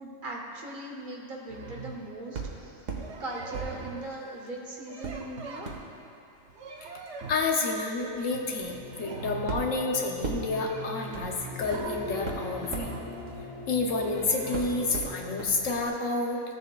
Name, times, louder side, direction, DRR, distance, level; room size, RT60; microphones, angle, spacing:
voice 1, 0.0-2.8 3.2-5.7, right 1 dB, 45° right, -1 dB, 1.2 m, -39 dB
sound 1, 1.5-2.1 2.9-4.1 4.9-6.1 6.5-7.5 8.1-8.5 8.8-9.8 10.5-13.1 13.9-15.0, right 4 dB, 65° right, 1.0 m, -43 dB
sound 2, 2.3-3.1 3.5-4.5 5.0-14.1 14.5-15.5 15.9-16.0, right 4 dB, 85° right, 1.4 m, -40 dB
voice 2, 7.3-12.9 13.7-16.4, left 3 dB, 85° left, 1 dB, 1.3 m, -29 dB
sound 3, 8.6-15.9, left 2 dB, 55° left, 1.2 m, -42 dB
14.5 x 7.2 x 2.4 m, 2.9 s
omnidirectional pair, 1.3 m